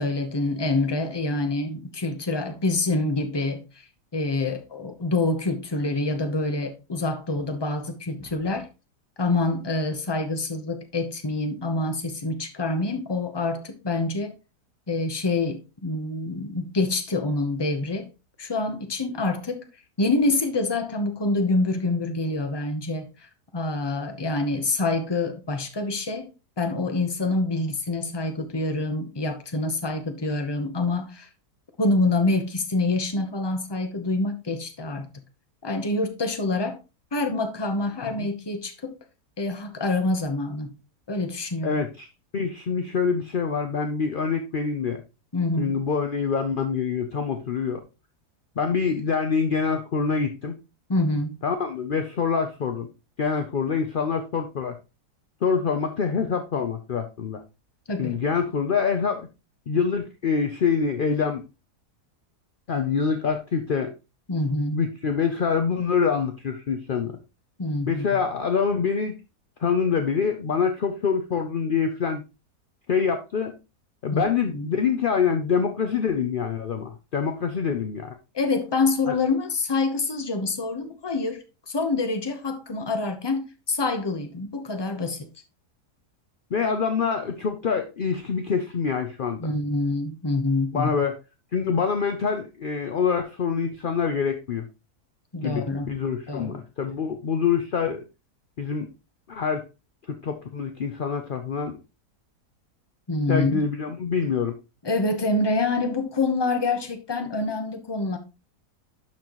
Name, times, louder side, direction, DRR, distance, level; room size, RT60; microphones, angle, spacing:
voice 1, 0.0-3.6 4.1-8.7 9.2-14.4 14.9-18.1 18.4-19.7 20.0-26.3 26.6-31.3 31.8-35.1 35.6-36.8 37.1-38.9 39.4-40.7 41.1-41.7 45.3-45.7 50.9-51.4 57.9-58.2 64.3-64.8 67.6-68.0 74.1-74.2 74.5-74.7 78.3-85.3 89.4-90.9 95.3-95.9 96.3-96.6 103.1-103.6 104.8-108.2, left 2 dB, 20° left, 0.8 m, -26 dB
voice 2, 41.6-42.1 42.3-45.0 45.6-47.8 48.6-50.5 51.4-52.9 53.2-54.8 55.4-57.4 58.0-59.2 59.7-61.4 62.7-63.9 64.7-67.2 67.9-69.2 69.6-72.2 72.9-73.5 74.0-78.1 79.1-79.2 86.5-89.5 90.7-91.2 91.5-94.7 95.4-98.0 98.6-98.9 99.3-99.7 100.1-101.8 103.3-104.6, left 6 dB, 55° left, 0.5 m, -25 dB
11.5 x 4.4 x 3.0 m
omnidirectional pair, 1.7 m